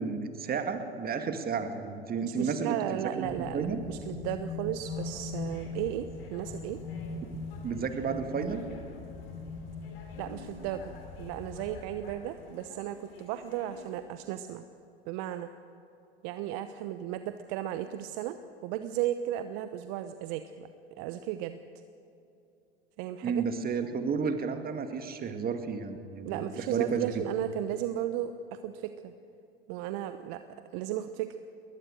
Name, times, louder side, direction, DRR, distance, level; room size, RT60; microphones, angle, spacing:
voice 1, 0.0-3.8 7.6-8.6 23.2-27.2, right 5 dB, 30° right, 7 dB, 2.2 m, -32 dB
voice 2, 2.2-6.8 10.2-14.6 15.1-15.5 16.2-20.7 21.0-21.6 23.0-23.4 26.2-29.1 29.7-30.4 30.7-31.4, right 11 dB, 55° right, 10 dB, 0.9 m, -35 dB
sound 1, 3.2-12.2, left 4 dB, 40° left, 4.5 m, -41 dB
sound 2, 4.8-14.0, left 3 dB, 75° left, 3.8 m, -52 dB
21.0 x 19.5 x 6.5 m, 2.8 s
hypercardioid pair, 85°, 29 cm